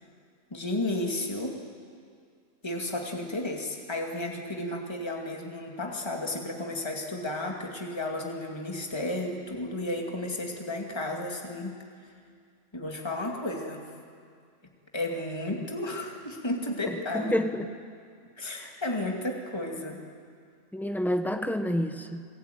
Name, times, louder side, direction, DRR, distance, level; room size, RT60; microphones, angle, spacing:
voice 1, 0.5-1.6 2.6-11.8 12.7-13.8 14.9-17.3 18.4-20.0, left 1 dB, 20° left, 1 dB, 2.4 m, -33 dB
voice 2, 17.1-17.7 18.6-18.7 20.7-22.3, equal, ahead, 7 dB, 1.0 m, -29 dB
28.0 x 18.0 x 9.3 m, 2.2 s
omnidirectional pair, 1.4 m